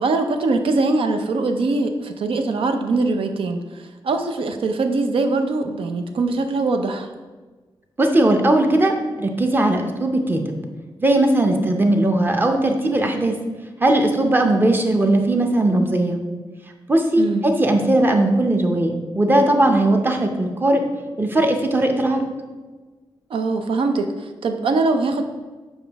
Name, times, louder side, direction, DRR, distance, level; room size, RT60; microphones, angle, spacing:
voice 1, 0.0-7.1 17.2-17.4 23.3-25.2, right 3 dB, 90° right, 6 dB, 0.6 m, -22 dB
voice 2, 8.0-10.6 11.0-13.3 13.8-16.2 16.9-20.8 21.2-22.3, right 1 dB, 20° right, 3 dB, 0.7 m, -18 dB
7.3 x 5.0 x 3.4 m, 1.3 s
wide cardioid pair, 160°, 9 cm